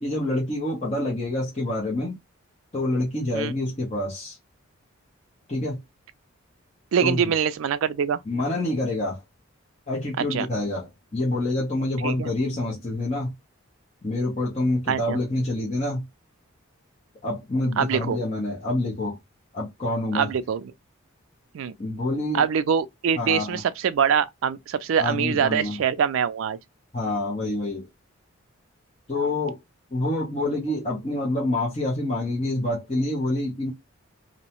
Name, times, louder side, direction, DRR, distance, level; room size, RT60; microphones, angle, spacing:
voice 1, 0.0-2.2 2.7-4.4 5.5-5.8 7.0-7.2 8.3-9.2 9.9-13.3 14.0-16.0 17.2-19.2 19.5-20.3 21.8-22.4 23.2-23.6 25.0-25.8 26.9-27.9 29.1-29.6 29.9-33.7, left 1 dB, 30° left, 0.7 m, -27 dB
voice 2, 6.9-8.2 10.2-10.5 12.0-12.3 14.9-15.2 17.8-18.2 20.1-20.7 21.5-21.7 22.3-26.6, right 7 dB, 70° right, 0.3 m, -24 dB
2.6 x 2.1 x 2.8 m
head